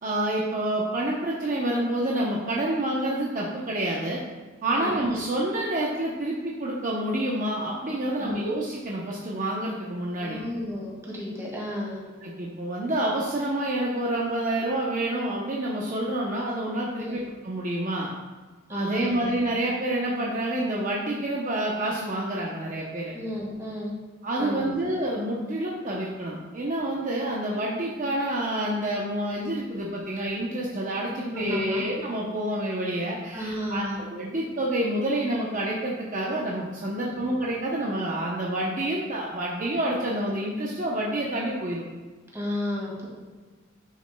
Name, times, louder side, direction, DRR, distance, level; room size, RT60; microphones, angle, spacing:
voice 1, 0.0-4.2 4.6-10.4 12.2-18.1 18.7-23.1 24.2-41.8, right 1 dB, 40° right, -3 dB, 0.8 m, -28 dB
voice 2, 10.2-12.0 17.0-17.2 18.7-19.2 23.1-23.9 24.4-24.8 31.3-31.8 33.3-34.0 37.1-37.3 42.3-43.1, left 1 dB, 15° right, -4 dB, 2.0 m, -32 dB
10.5 x 6.2 x 2.2 m, 1.4 s
head